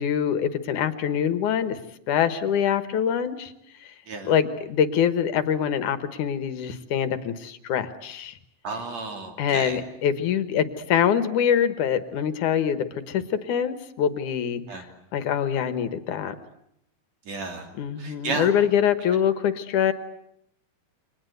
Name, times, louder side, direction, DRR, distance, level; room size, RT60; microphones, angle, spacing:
voice 1, 0.0-1.8 2.1-3.5 3.8-3.9 4.2-8.4 9.4-16.3 17.8-19.9, left 8 dB, 70° left, 12 dB, 2.7 m, -24 dB
voice 2, 8.6-9.8 14.7-14.8 17.3-17.7 18.0-18.5, right 4 dB, 55° right, 5 dB, 4.1 m, -32 dB
29.5 x 25.0 x 8.0 m, 0.73 s
omnidirectional pair, 3.7 m